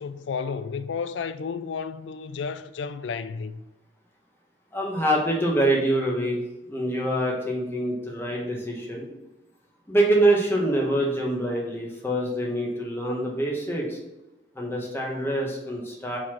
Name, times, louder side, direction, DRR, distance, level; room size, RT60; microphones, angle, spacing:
voice 1, 0.0-3.6, left 5 dB, 70° left, 0.4 m, -32 dB
voice 2, 4.7-6.4 6.7-9.1 9.9-14.0 14.5-16.2, right 1 dB, 15° left, 1.2 m, -25 dB
4.8 x 4.1 x 5.7 m
head